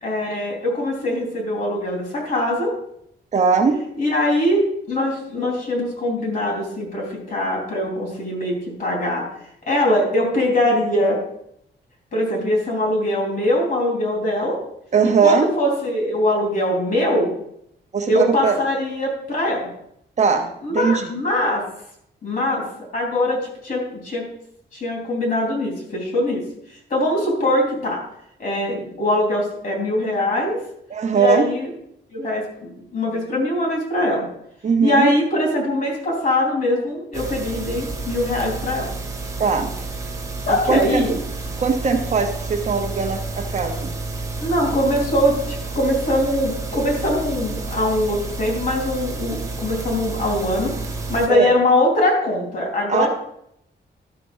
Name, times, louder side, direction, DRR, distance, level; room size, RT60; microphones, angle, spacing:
voice 1, 0.0-2.7 4.0-4.6 4.9-9.3 9.7-11.2 12.1-14.6 15.2-17.3 18.1-19.7 20.6-21.6 22.2-22.6 22.9-23.4 23.6-24.2 24.7-26.4 26.9-28.0 28.4-30.6 31.1-31.7 32.1-34.3 34.8-38.9 40.5-41.2 44.4-50.7 51.1-53.1, left 1 dB, 50° left, -2 dB, 3.6 m, -22 dB
voice 2, 3.3-3.8 14.9-15.5 17.9-18.6 20.2-21.1 30.9-31.5 34.6-35.1 39.4-39.8 40.7-41.0 41.6-43.9 51.3-51.5 52.9-53.1, right 5 dB, 40° right, 4 dB, 0.9 m, -20 dB
sound 1, 37.1-51.3, right 3 dB, 15° right, 1.2 m, -30 dB
12.5 x 4.4 x 6.3 m, 0.75 s
wide cardioid pair, 175°, 19 cm